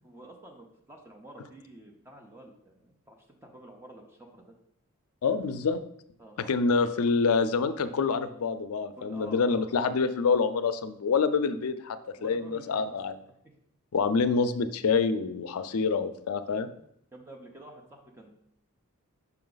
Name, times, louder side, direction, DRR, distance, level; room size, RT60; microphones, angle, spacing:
voice 1, 0.0-4.5 6.2-6.8 9.0-9.7 12.2-13.0 15.7-15.8 17.1-18.3, right 1 dB, 10° right, 2 dB, 0.6 m, -49 dB
voice 2, 5.2-5.8 6.5-13.2 13.9-16.7, left 5 dB, 75° left, 11 dB, 0.4 m, -26 dB
5.8 x 4.7 x 3.9 m, 0.72 s
head